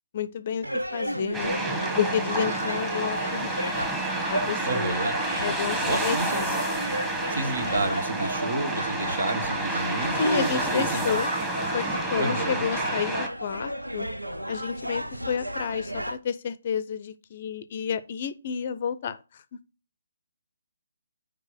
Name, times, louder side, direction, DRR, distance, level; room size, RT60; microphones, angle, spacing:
voice 1, 0.1-1.6 2.0-3.8 4.3-5.0 5.4-6.5 10.1-11.3 11.7-14.1 14.5-19.2, left 7 dB, 40° left, 0.5 m, -30 dB
sound 1, 0.6-16.2, equal, 85° right, 0.7 m, -33 dB
Ambiente - maquinaria cantera, 1.3-13.3, right 2 dB, 10° right, 1.3 m, -30 dB
voice 2, 4.6-5.2 5.8-6.6 7.3-11.2 12.2-12.7, right 2 dB, 60° right, 1.2 m, -30 dB
5.0 x 4.6 x 6.1 m
figure-of-eight pair, 140°, 0 cm